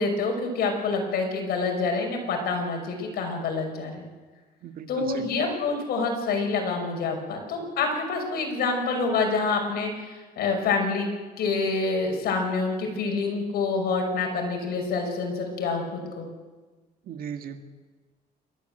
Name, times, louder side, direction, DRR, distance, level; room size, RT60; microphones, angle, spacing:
voice 1, 0.0-4.0 4.9-11.1 11.4-16.3, left 4 dB, 65° left, 3 dB, 6.0 m, -27 dB
voice 2, 4.6-5.3 17.1-17.6, right 8 dB, 60° right, 7 dB, 1.9 m, -37 dB
28.0 x 14.0 x 8.0 m, 1.3 s
cardioid pair, 110°, 17 cm